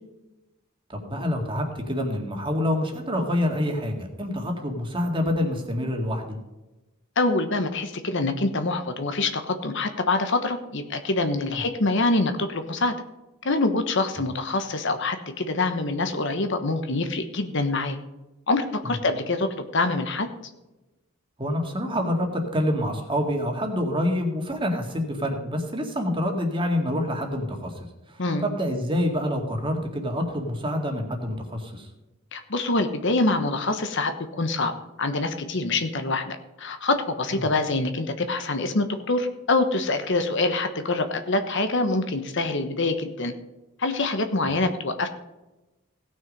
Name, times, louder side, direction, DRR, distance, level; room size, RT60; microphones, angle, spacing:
voice 1, 0.9-6.4 11.5-11.6 14.2-14.3 18.8-18.9 21.4-27.7 28.4-31.9 37.3-37.4, left 1 dB, 25° right, 2 dB, 2.1 m, -27 dB
voice 2, 7.2-12.9 13.4-18.0 18.5-20.3 28.2-28.4 32.3-34.7 35.0-43.3 43.8-45.1, left 2 dB, 60° left, 8 dB, 1.1 m, -25 dB
17.0 x 6.4 x 5.4 m, 1.0 s
head